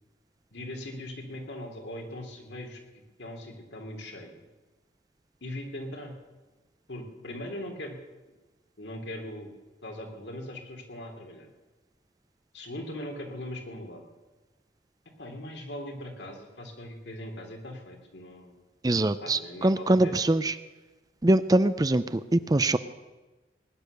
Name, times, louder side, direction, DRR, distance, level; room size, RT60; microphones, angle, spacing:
voice 1, 0.5-2.8 3.2-4.4 5.4-6.1 6.9-8.0 8.8-9.5 9.8-11.5 12.5-14.0 15.2-18.6 19.2-20.2, left 1 dB, 85° left, 2 dB, 3.0 m, -40 dB
voice 2, 18.8-20.5 21.2-22.8, right 1 dB, 20° right, 13 dB, 0.5 m, -23 dB
20.0 x 10.5 x 6.7 m, 1.2 s
head